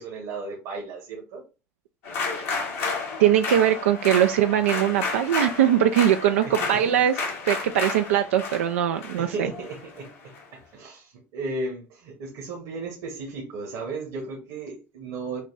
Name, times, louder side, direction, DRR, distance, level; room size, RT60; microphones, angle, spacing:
voice 1, 0.0-1.4 6.4-6.9 9.2-15.4, right 3 dB, 70° right, 1 dB, 1.4 m, -35 dB
sound 1, 2.0-10.4, left 4 dB, 80° left, 1.8 m, -32 dB
voice 2, 3.2-7.1 7.5-9.5, right 10 dB, 85° right, 7 dB, 0.3 m, -21 dB
6.5 x 2.2 x 3.3 m, 0.30 s
hypercardioid pair, 75°, 7 cm